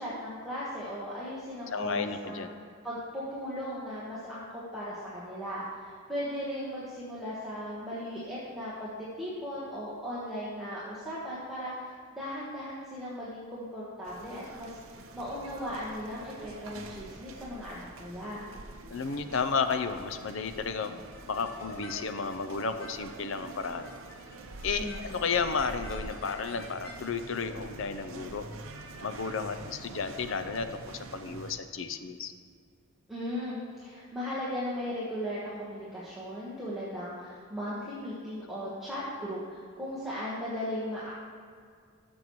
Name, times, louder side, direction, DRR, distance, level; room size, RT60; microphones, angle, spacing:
voice 1, 0.0-2.5 2.8-18.4 24.8-25.2 33.1-41.1, equal, ahead, -10 dB, 1.2 m, -37 dB
voice 2, 1.7-2.5 18.9-20.9 21.3-23.9 24.6-28.5 29.0-32.3, left 5 dB, 60° left, 9 dB, 0.5 m, -32 dB
sound 1, 14.0-31.5, right 2 dB, 65° right, 0.7 m, -46 dB
sound 2, 21.1-27.1, left 1 dB, 40° left, 1.2 m, -51 dB
14.0 x 7.0 x 3.1 m, 2.1 s
head